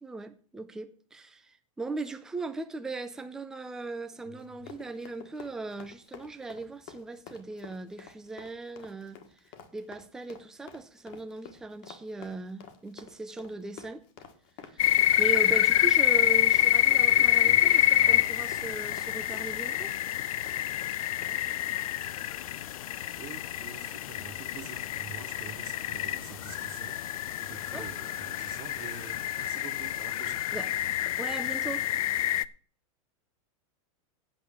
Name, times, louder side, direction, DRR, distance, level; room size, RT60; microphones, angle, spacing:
voice 1, 0.0-9.2 9.7-14.0 14.7-20.0 27.7-27.9 30.5-30.7 31.2-31.9, right 3 dB, 5° right, 0.4 m, -38 dB
voice 2, 4.2-4.7 17.0-18.5 23.2-27.0 27.3-30.5, right 8 dB, 30° right, 1.1 m, -47 dB
Run, 4.4-21.8 22.0-22.3, left 8 dB, 35° left, 1.5 m, -50 dB
sound 1, 14.8-32.4, left 13 dB, 90° left, 0.6 m, -27 dB
8.7 x 6.9 x 8.5 m
supercardioid pair, 175°, 17 cm